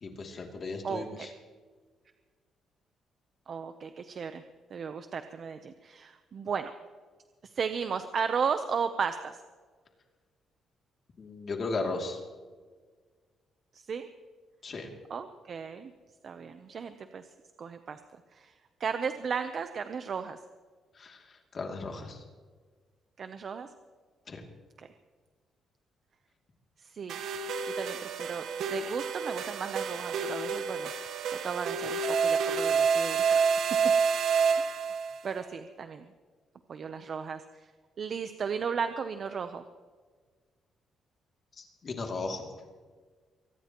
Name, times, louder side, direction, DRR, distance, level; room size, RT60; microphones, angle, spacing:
voice 1, 0.0-1.3 11.2-12.2 14.6-14.9 21.0-21.2 21.5-22.2 24.3-24.4 41.6-42.5, left 3 dB, 35° left, 2 dB, 2.6 m, -36 dB
voice 2, 0.8-1.3 3.5-4.4 4.7-6.7 7.4-9.4 13.7-14.1 15.1-15.9 16.2-17.3 17.6-18.0 18.3-18.5 18.8-20.4 23.2-23.7 24.8-24.9 26.8-27.2 27.8-30.9 31.3-33.5 34.6-34.7 35.2-36.1 36.7-37.7 38.0-39.6, right 6 dB, 40° right, 9 dB, 0.7 m, -35 dB
sound 1, 27.1-35.2, right 6 dB, 65° right, 1.3 m, -28 dB
23.5 x 19.0 x 3.0 m, 1.5 s
cardioid pair, 175°, 0 cm